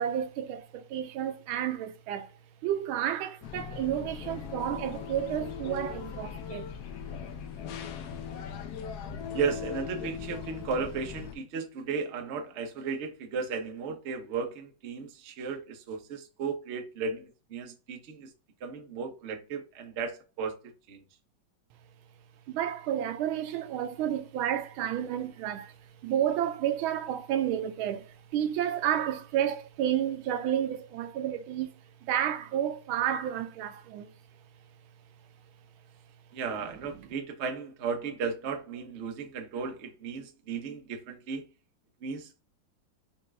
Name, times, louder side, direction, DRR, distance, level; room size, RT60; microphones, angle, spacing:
voice 1, 0.0-2.3 2.6-6.7 10.0-10.1 22.5-25.8 26.0-31.7 32.0-34.1 37.0-37.1, right 10 dB, 90° right, 1.4 m, -31 dB
sound 1, 3.4-11.4, left 7 dB, 70° left, 1.0 m, -39 dB
voice 2, 9.3-18.3 18.6-20.6 20.9-21.0 36.3-41.4 42.0-42.4, right 5 dB, 65° right, 0.6 m, -35 dB
5.5 x 2.4 x 3.2 m
omnidirectional pair, 2.2 m